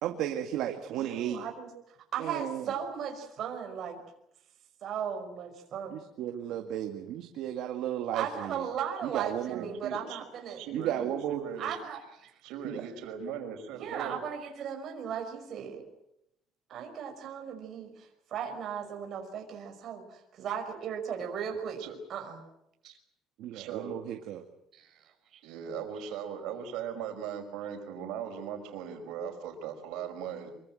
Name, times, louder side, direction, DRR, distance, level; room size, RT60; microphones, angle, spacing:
voice 1, 0.0-1.4 2.2-2.7 5.9-8.6 9.0-9.6 10.7-11.5 12.6-12.8 23.4-24.4, right 11 dB, 60° right, 4 dB, 2.1 m, -34 dB
voice 2, 1.0-4.0 4.8-6.0 8.1-10.6 11.6-12.3 13.7-15.8 16.7-21.8 22.1-22.4 22.8-23.0 24.7-25.4, right 8 dB, 40° right, 3 dB, 5.5 m, -37 dB
voice 3, 9.5-10.2 10.5-11.7 12.4-14.2 21.8-22.0 23.5-24.0 25.4-30.5, right 7 dB, 85° right, 5 dB, 5.3 m, -39 dB
25.0 x 23.5 x 7.7 m, 0.80 s
cardioid pair, 175°, 0 cm